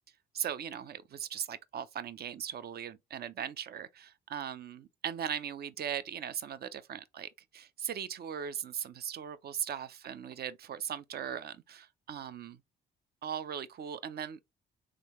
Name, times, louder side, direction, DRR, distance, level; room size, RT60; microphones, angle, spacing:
voice 1, 0.3-12.6 13.2-14.4, right 9 dB, 55° right, 0.5 m, -39 dB
3.7 x 3.2 x 2.9 m
cardioid pair, 90°, 20 cm